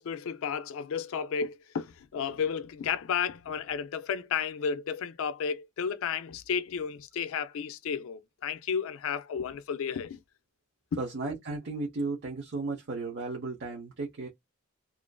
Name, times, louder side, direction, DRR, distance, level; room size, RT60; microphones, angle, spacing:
voice 1, 0.0-10.2 10.9-11.0, left 6 dB, 65° left, 0.4 m, -32 dB
voice 2, 11.0-14.3, right 3 dB, 55° right, 0.7 m, -34 dB
2.5 x 2.4 x 2.2 m
head